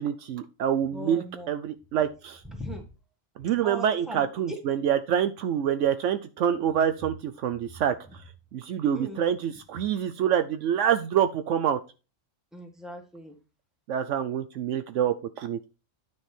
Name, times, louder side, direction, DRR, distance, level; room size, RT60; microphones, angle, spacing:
voice 1, 0.0-2.4 3.4-7.9 8.5-11.8 13.9-15.6, right 9 dB, 70° right, 9 dB, 0.9 m, -26 dB
voice 2, 0.9-1.5 2.5-2.8 3.6-4.6 8.9-9.2 12.5-13.4, equal, ahead, 2 dB, 1.5 m, -39 dB
9.6 x 4.8 x 4.3 m, 0.32 s
omnidirectional pair, 1.4 m